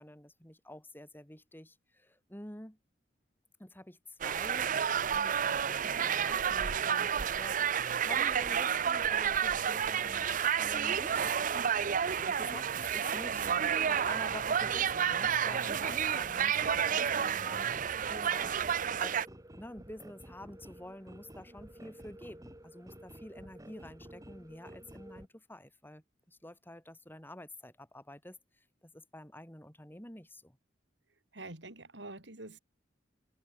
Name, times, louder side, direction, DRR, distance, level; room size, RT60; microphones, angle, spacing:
voice 1, 0.0-2.8 3.6-4.8 5.1-13.5 13.9-18.5 19.0-19.2 19.5-28.4 28.8-30.6, left 1 dB, 10° left, 4.4 m, -49 dB
sound 1, 4.2-19.2, right 8 dB, 45° right, 0.6 m, -30 dB
voice 2, 13.3-13.7 31.3-32.6, right 2 dB, 65° right, 4.0 m, -46 dB
sound 2, 13.4-25.3, right 1 dB, 20° right, 3.2 m, -52 dB
head